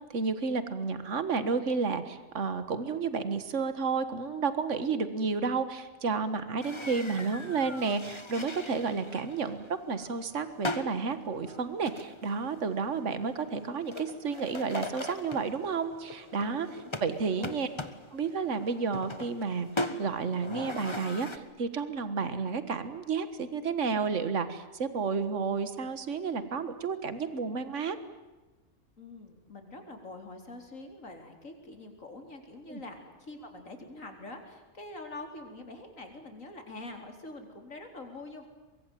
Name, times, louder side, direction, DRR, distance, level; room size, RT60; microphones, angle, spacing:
voice 1, 0.1-16.7 17.0-17.7 18.1-19.7 20.0-28.0 32.7-32.8, right 5 dB, 65° right, 11 dB, 1.9 m, -31 dB
sound 1, 6.6-21.4, left 2 dB, 20° left, 1.5 m, -41 dB
voice 2, 16.7-17.6 29.0-38.5, left 2 dB, 85° left, 4 dB, 4.4 m, -45 dB
23.5 x 23.5 x 9.2 m, 1.2 s
omnidirectional pair, 1.3 m